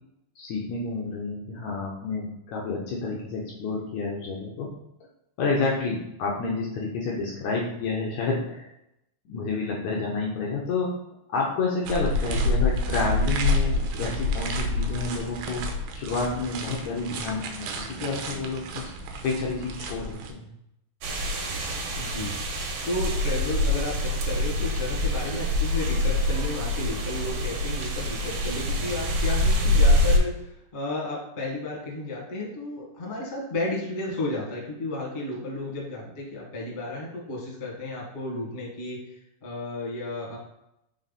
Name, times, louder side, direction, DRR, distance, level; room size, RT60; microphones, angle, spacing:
voice 1, 0.4-4.7 5.4-8.7 9.3-10.9 11.3-15.6 16.0-18.9 19.2-20.5, left 3 dB, 80° left, -2 dB, 1.6 m, -29 dB
sound 1, 11.9-20.3, left 2 dB, 85° right, 2.7 m, -28 dB
sound 2, 21.0-30.2, left 1 dB, 70° right, 2.8 m, -25 dB
voice 2, 22.0-22.3 22.8-39.0 39.4-40.4, left 2 dB, 30° left, -4 dB, 0.8 m, -33 dB
6.4 x 4.0 x 4.1 m, 0.83 s
omnidirectional pair, 4.5 m